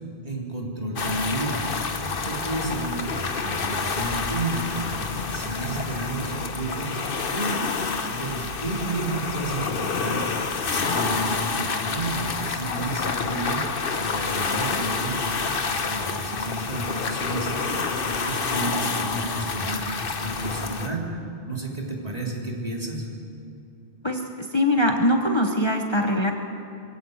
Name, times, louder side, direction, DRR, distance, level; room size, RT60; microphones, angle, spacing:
voice 1, 0.2-1.6 2.0-5.0 5.3-7.0 7.3-7.5 8.1-10.3 10.6-13.6 13.9-15.2 15.7-17.7 18.0-21.0 21.4-23.1, right 2 dB, 40° right, -1 dB, 3.6 m, -31 dB
sound 1, 1.0-20.9, left 4 dB, 60° left, 1.3 m, -28 dB
voice 2, 24.0-26.3, left 1 dB, 25° left, 3 dB, 1.2 m, -22 dB
23.0 x 16.0 x 8.0 m, 2.6 s
omnidirectional pair, 1.0 m